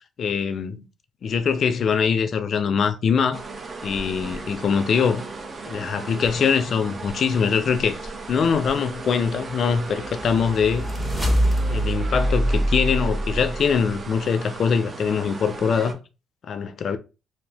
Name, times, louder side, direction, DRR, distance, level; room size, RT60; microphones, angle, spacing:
voice 1, 0.2-0.9 1.2-3.4 3.8-5.2 5.7-8.0 8.3-10.9 11.7-16.0 16.4-17.0, left 6 dB, 55° left, 0.4 m, -23 dB
sound 1, 3.3-15.9, right 3 dB, 40° right, 0.6 m, -36 dB
sound 2, 9.7-13.9, right 1 dB, 15° right, 0.9 m, -24 dB
2.6 x 2.5 x 3.3 m
cardioid pair, 90°, 0 cm